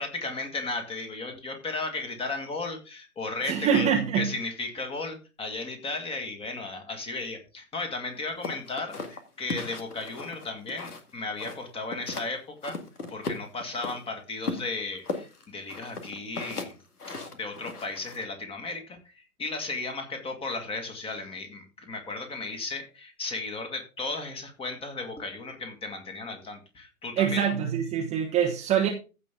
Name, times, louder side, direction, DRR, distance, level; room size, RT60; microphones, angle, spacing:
voice 1, 0.0-3.9 4.1-12.8 13.1-16.8 17.1-27.5, left 3 dB, 10° left, 1.9 m, -35 dB
voice 2, 3.5-4.3 27.2-28.9, right 8 dB, 15° right, 1.0 m, -24 dB
sound 1, 8.4-11.1 11.4-12.3 12.6-14.0 14.4-18.2, left 3 dB, 85° left, 2.1 m, -36 dB
15.5 x 5.4 x 3.6 m
hypercardioid pair, 130°, 44 cm